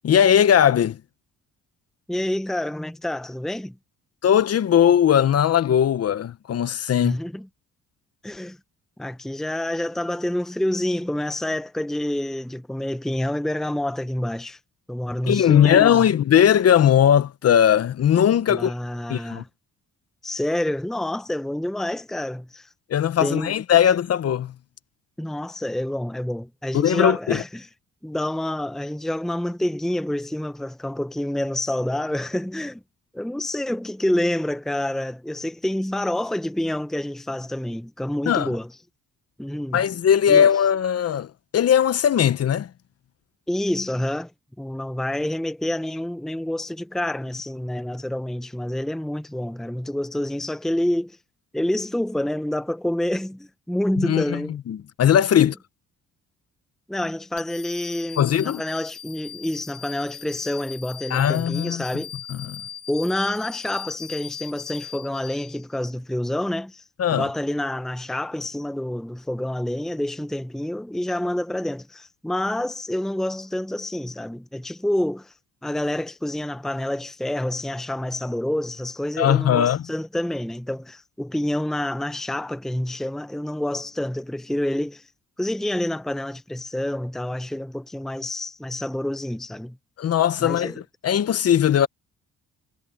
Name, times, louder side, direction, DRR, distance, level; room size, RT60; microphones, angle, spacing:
voice 1, 0.0-1.0 4.2-7.2 15.3-18.7 19.1-19.4 22.9-24.5 26.7-27.4 38.3-38.5 39.7-41.3 41.5-42.7 54.0-55.5 58.2-58.6 61.1-61.8 62.3-62.6 67.0-67.3 79.2-79.8 90.0-90.7 91.0-91.9, left 9 dB, 55° left, 1.0 m, -19 dB
voice 2, 2.1-3.7 7.0-7.5 8.2-8.6 9.0-14.6 14.9-16.1 18.5-19.5 20.2-22.7 23.2-23.5 25.2-27.7 28.0-32.8 33.1-38.7 39.4-39.8 40.3-40.5 43.5-44.3 44.6-51.2 51.5-54.6 55.4-55.5 56.9-62.1 62.9-66.8 67.1-75.3 75.6-85.1 85.4-89.8 90.4-90.8, left 1 dB, ahead, 0.8 m, -28 dB
sound 1, 57.4-65.8, left 9 dB, 85° left, 4.4 m, -40 dB
cardioid pair, 90°, 30 cm